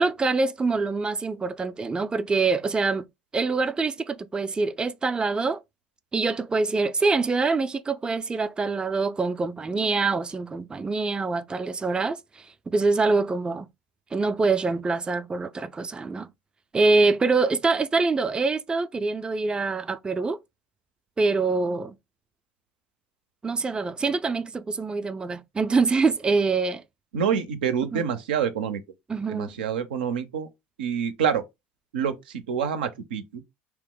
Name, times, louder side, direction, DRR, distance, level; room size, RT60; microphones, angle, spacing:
voice 1, 0.0-3.0 3.3-5.6 6.1-12.2 12.7-13.7 14.1-16.3 16.7-20.4 21.2-21.9 23.4-26.8 27.9-28.0 29.1-29.5, right 3 dB, 20° right, 0.3 m, -25 dB
voice 2, 27.1-28.8 29.3-30.5 30.8-31.5 31.9-33.4, right 7 dB, 90° right, 0.5 m, -27 dB
2.8 x 2.0 x 3.7 m
hypercardioid pair, 80°, 5 cm